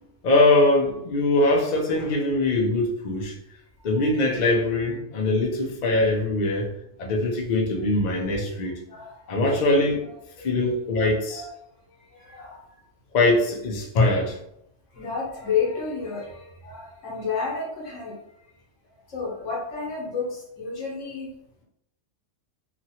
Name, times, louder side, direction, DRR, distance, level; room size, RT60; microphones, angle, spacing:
voice 1, 0.2-3.3 3.8-6.7 7.0-8.7 9.3-10.0 10.4-11.4 13.1-14.4, left 2 dB, 50° left, -1 dB, 0.6 m, -22 dB
voice 2, 8.9-9.5 10.0-10.1 10.4-11.4 11.9-12.8 14.9-18.5 19.1-21.3, left 5 dB, 80° left, -3 dB, 1.3 m, -32 dB
2.9 x 2.5 x 2.8 m, 0.78 s
omnidirectional pair, 1.3 m